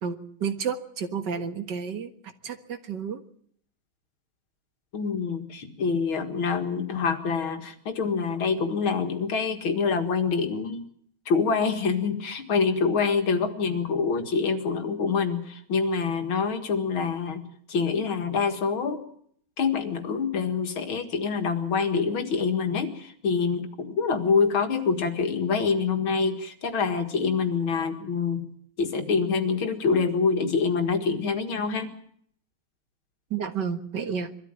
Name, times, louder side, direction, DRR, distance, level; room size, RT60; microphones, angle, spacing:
voice 1, 0.0-2.1 2.4-3.2 33.3-34.3, right 6 dB, 60° right, 8 dB, 2.1 m, -31 dB
voice 2, 4.9-10.9 11.3-17.4 17.7-19.0 19.6-28.4 28.8-31.9, left 5 dB, 85° left, 6 dB, 2.8 m, -26 dB
22.5 x 13.5 x 9.1 m, 0.65 s
omnidirectional pair, 2.2 m